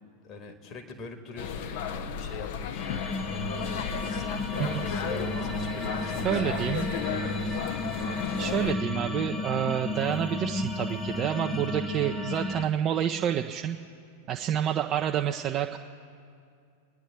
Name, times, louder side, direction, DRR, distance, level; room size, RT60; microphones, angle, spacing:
voice 1, 0.2-2.9 4.0-6.7 6.9-7.7, left 4 dB, 35° left, 4 dB, 1.8 m, -43 dB
sound 1, 1.4-8.7, left 8 dB, 50° left, 0.6 m, -34 dB
sound 2, 2.8-12.6, left 2 dB, 10° left, 1.3 m, -33 dB
voice 2, 6.2-6.9 8.4-13.8 14.3-15.8, right 10 dB, 30° right, 3 dB, 0.5 m, -28 dB
28.0 x 10.0 x 3.7 m, 2.4 s
figure-of-eight pair, 90°, 0 cm